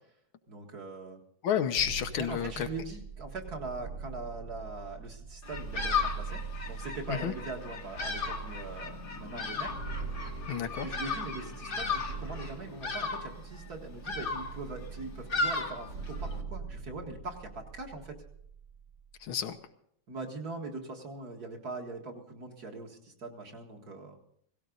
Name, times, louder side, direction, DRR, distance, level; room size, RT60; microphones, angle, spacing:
voice 1, 0.5-1.2 2.2-9.7 10.8-18.2 20.1-24.2, right 3 dB, 50° right, 1 dB, 2.3 m, -42 dB
voice 2, 1.4-2.7 7.1-7.3 10.5-10.9 19.2-19.6, left 8 dB, 80° left, 8 dB, 1.7 m, -30 dB
sound 1, 1.7-19.4, right 5 dB, 65° right, 2.5 m, -42 dB
Bird vocalization bird call bird song, 5.4-16.4, left 4 dB, 35° left, 1.0 m, -36 dB
sound 2, 5.9-13.6, left 6 dB, 55° left, 1.4 m, -52 dB
17.5 x 16.5 x 3.9 m, 0.68 s
omnidirectional pair, 2.2 m